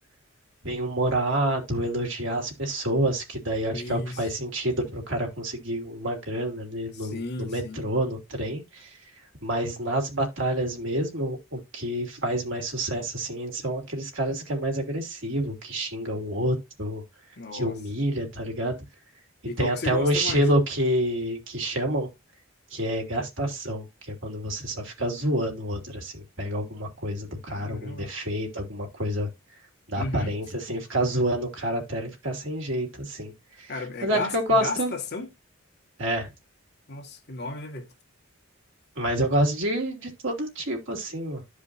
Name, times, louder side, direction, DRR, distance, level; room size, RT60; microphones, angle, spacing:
voice 1, 0.6-9.0 9.4-17.0 17.5-18.8 19.6-22.1 22.7-29.3 29.9-33.3 33.6-33.7 34.0-34.9 36.0-36.3 39.0-41.4, right 1 dB, 65° right, 2.7 m, -28 dB
voice 2, 3.7-4.3 6.9-7.9 17.4-17.8 19.5-20.5 27.5-28.1 30.0-30.3 33.7-35.3 36.9-37.9, left 3 dB, 55° left, 1.7 m, -34 dB
13.0 x 5.1 x 2.6 m
head